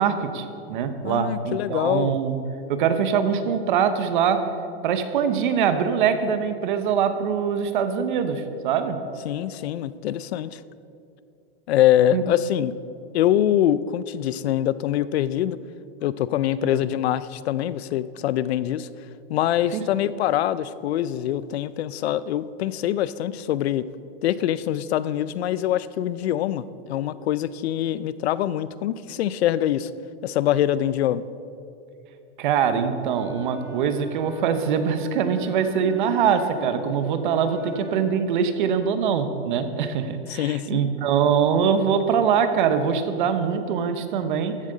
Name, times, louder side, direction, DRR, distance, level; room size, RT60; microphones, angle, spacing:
voice 1, 0.0-2.4 2.7-4.5 4.8-9.0 12.1-12.2 16.6-16.7 19.7-19.8 32.4-44.7, right 7 dB, 50° right, 9 dB, 0.8 m, -23 dB
voice 2, 1.0-2.2 9.2-10.6 11.7-12.7 13.1-15.6 16.0-18.9 19.3-23.9 24.2-29.9 30.2-31.3 40.3-40.8, left 12 dB, 90° left, 17 dB, 0.5 m, -24 dB
Wind instrument woodwind instrument, 33.0-38.2, right 2 dB, 10° right, 1.1 m, -41 dB
14.0 x 7.5 x 3.9 m, 2.6 s
supercardioid pair, 175°, 31 cm